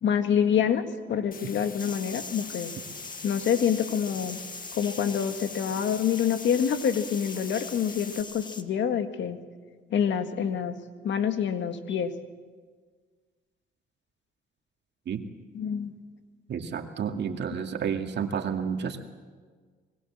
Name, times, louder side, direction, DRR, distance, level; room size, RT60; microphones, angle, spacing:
voice 1, 0.0-2.7 3.2-4.4 4.7-9.4 9.9-10.7 11.0-12.1 15.5-15.9, left 8 dB, 65° left, 8 dB, 1.8 m, -26 dB
sound 1, 1.3-8.2, left 6 dB, 45° left, 1.8 m, -45 dB
sound 2, 1.8-8.6, left 3 dB, 20° left, 1.5 m, -42 dB
voice 2, 16.5-19.0, right 7 dB, 60° right, 5 dB, 2.3 m, -30 dB
25.0 x 21.5 x 7.5 m, 1.5 s
cardioid pair, 90°, 20 cm